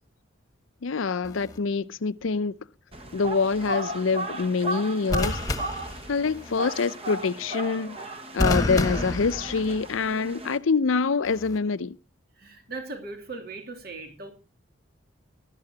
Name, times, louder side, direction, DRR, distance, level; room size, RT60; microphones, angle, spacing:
voice 1, 0.8-2.5 3.1-5.4 6.1-8.0 8.3-12.0, left 4 dB, 85° left, 0.6 m, -25 dB
sound 1, 1.2-1.6 5.1-6.6 8.4-10.1 11.3-11.6, left 2 dB, 20° left, 1.5 m, -29 dB
sound 2, 2.9-10.6, right 1 dB, 30° right, 1.3 m, -35 dB
voice 2, 12.4-14.3, right 3 dB, 50° right, 2.8 m, -38 dB
18.0 x 12.5 x 2.8 m
head